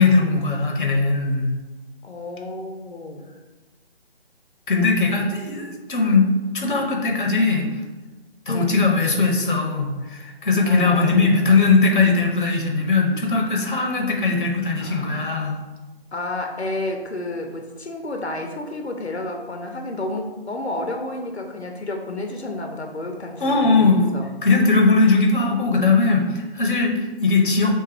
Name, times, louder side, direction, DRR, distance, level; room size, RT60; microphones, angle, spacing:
voice 1, 0.0-1.5 4.7-7.7 8.5-15.6 23.4-24.1 24.4-27.7, left 3 dB, 50° left, 2 dB, 0.8 m, -19 dB
voice 2, 2.0-3.3 8.5-8.7 10.6-11.2 14.8-15.5 16.1-23.9 24.1-24.3, left 2 dB, 90° left, 3 dB, 0.7 m, -31 dB
4.4 x 3.3 x 3.3 m, 1.2 s
figure-of-eight pair, 150°, 32 cm